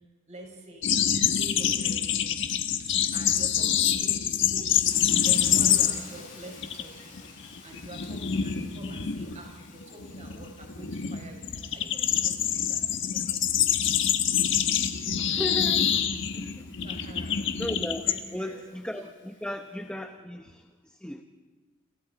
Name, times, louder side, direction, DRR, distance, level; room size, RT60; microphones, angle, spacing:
voice 1, 0.3-1.1 1.4-2.3 2.8-4.9 5.2-13.8 16.8-17.6 18.1-18.6, right 1 dB, 35° right, 1 dB, 5.7 m, -46 dB
sound 1, 0.8-6.2 6.5-6.8 7.2-18.2, left 9 dB, 60° left, 1.4 m, -26 dB
Hiss, 4.8-19.6, left 5 dB, 40° left, 7.9 m, -52 dB
voice 2, 15.2-16.0 16.3-16.7 17.6-18.1 18.3-21.2, equal, 5° left, 5 dB, 0.9 m, -36 dB
29.0 x 27.5 x 4.1 m, 1.4 s
head